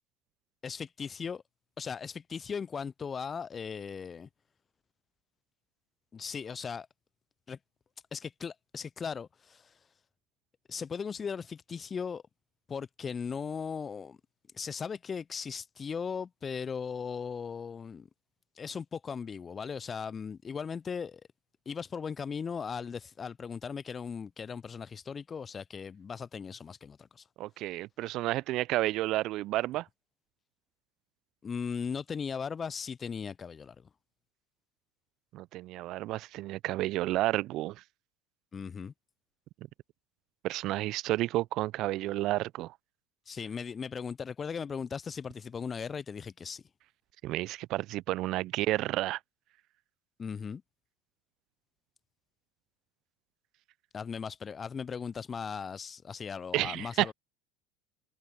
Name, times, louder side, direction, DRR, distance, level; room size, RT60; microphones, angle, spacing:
voice 1, 0.6-1.4 1.8-4.3 6.1-6.9 7.5-7.6 8.1-9.7 10.7-12.2 12.7-14.2 14.5-18.1 18.6-21.2 21.7-27.2 31.4-33.9 38.5-38.9 43.3-46.6 50.2-50.6 53.9-57.1, left 6 dB, 30° left, 0.3 m, -38 dB
voice 2, 27.4-29.9 35.3-37.8 40.4-42.7 47.2-49.2 56.5-57.1, right 16 dB, 55° right, 0.4 m, -31 dB
hypercardioid pair, 75°, 0 cm